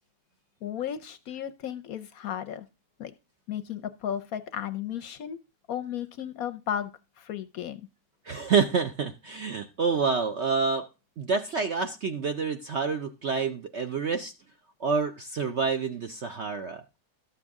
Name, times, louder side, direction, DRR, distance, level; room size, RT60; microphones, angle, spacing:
voice 1, 0.6-2.7 3.0-3.1 3.5-5.4 5.7-7.9, left 9 dB, 65° left, 11 dB, 0.9 m, -34 dB
voice 2, 8.3-10.9 11.2-14.3 14.8-16.8, right 5 dB, 60° right, 7 dB, 0.7 m, -28 dB
12.5 x 7.0 x 3.6 m, 0.28 s
omnidirectional pair, 1.9 m